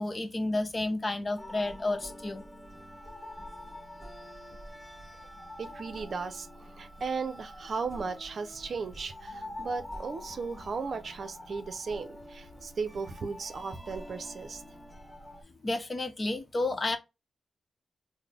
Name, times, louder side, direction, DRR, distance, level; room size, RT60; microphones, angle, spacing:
voice 1, 0.0-2.4 15.6-17.0, left 2 dB, 35° left, 0.8 m, -31 dB
sound 1, 1.4-15.4, left 1 dB, 15° left, 1.3 m, -46 dB
voice 2, 5.6-14.6, right 4 dB, 60° right, 0.6 m, -36 dB
3.9 x 2.1 x 3.5 m
cardioid pair, 70°, 0 cm